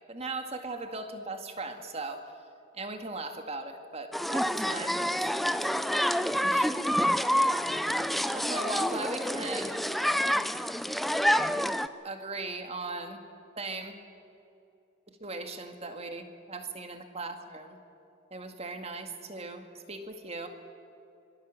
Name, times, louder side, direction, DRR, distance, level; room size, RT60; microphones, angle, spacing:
voice 1, 0.0-2.3 2.7-6.0 6.5-6.7 7.9-8.0 8.3-9.8 12.0-13.2 13.6-14.0 15.1-17.8 18.3-20.5, right 3 dB, 30° right, 6 dB, 2.0 m, -39 dB
sound 1, 4.1-11.9, equal, ahead, 0.6 m, -28 dB
25.0 x 22.0 x 7.5 m, 2.6 s
head